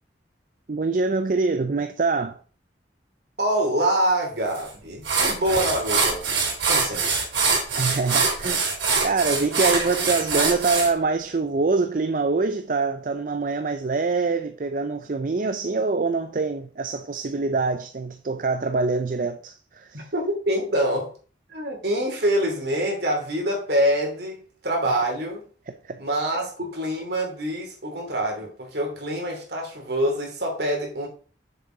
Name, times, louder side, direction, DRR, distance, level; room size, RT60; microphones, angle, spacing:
voice 1, 0.7-2.4 7.8-8.7 9.0-20.1 25.8-26.0, right 3 dB, 45° right, 0.4 m, -25 dB
voice 2, 3.4-6.2 6.7-7.3 19.9-21.1 21.5-25.4 26.0-31.1, right 1 dB, 65° right, 2.9 m, -25 dB
sound 1, 4.5-4.7 5.0-10.9, right 4 dB, 80° right, 3.2 m, -23 dB
7.0 x 6.9 x 3.9 m
head